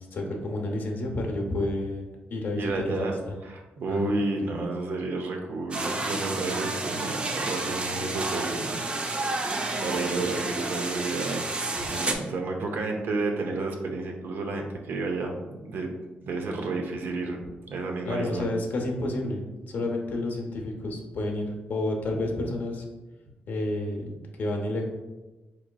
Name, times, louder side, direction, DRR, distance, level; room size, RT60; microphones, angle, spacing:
voice 1, 0.0-2.0 2.3-3.4 3.9-4.1 18.0-22.8 23.5-24.8, left 1 dB, 60° left, 1 dB, 0.7 m, -30 dB
voice 2, 2.6-3.1 3.4-8.7 9.0-11.4 11.7-15.9 16.2-17.4 17.7-18.5, right 3 dB, 70° right, 2 dB, 0.6 m, -31 dB
sound 1, 5.7-12.1, right 2 dB, 30° right, 0.4 m, -30 dB
4.8 x 3.0 x 2.2 m, 1.2 s
wide cardioid pair, 130°, 4 cm